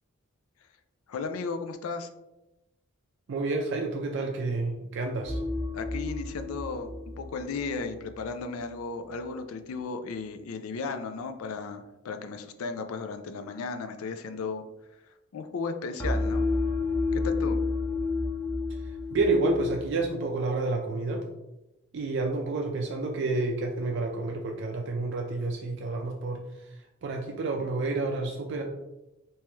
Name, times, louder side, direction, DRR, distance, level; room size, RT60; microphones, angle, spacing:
voice 1, 1.1-2.1 5.7-14.6 15.3-16.5 17.1-17.6, left 4 dB, 85° left, 7 dB, 0.4 m, -35 dB
voice 2, 3.3-5.4 18.8-21.3 21.9-28.6, right 2 dB, 55° right, 1 dB, 0.4 m, -29 dB
sound 1, 5.3-8.3 16.0-20.0, left 3 dB, 10° left, 0.5 m, -31 dB
3.4 x 2.9 x 3.0 m, 0.96 s
head